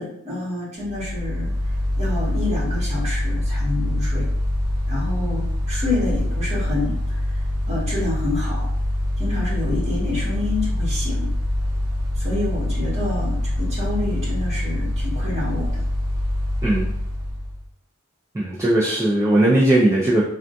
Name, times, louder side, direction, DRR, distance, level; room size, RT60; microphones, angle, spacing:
voice 1, 0.0-1.5 2.0-4.3 4.9-7.0 7.7-8.7 9.2-11.3 12.2-15.8, left 2 dB, 30° right, -8 dB, 1.4 m, -28 dB
Mechanical fan, 0.8-17.7, left 1 dB, 70° right, 0.7 m, -24 dB
voice 2, 18.3-20.2, right 1 dB, 15° right, -5 dB, 0.3 m, -18 dB
3.5 x 2.2 x 2.5 m, 0.76 s
head